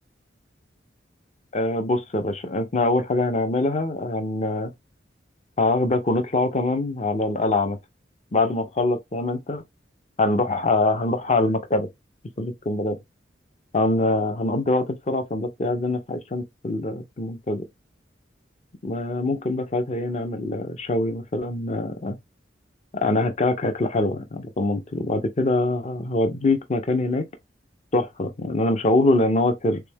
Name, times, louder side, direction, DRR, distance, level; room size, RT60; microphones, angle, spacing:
voice 1, 1.5-4.7 5.6-7.8 8.3-9.6 10.2-11.9 12.4-13.0 13.7-17.6 18.8-22.2 22.9-27.3 27.9-29.8, left 2 dB, 40° left, 0.6 m, -24 dB
3.5 x 3.3 x 3.4 m
head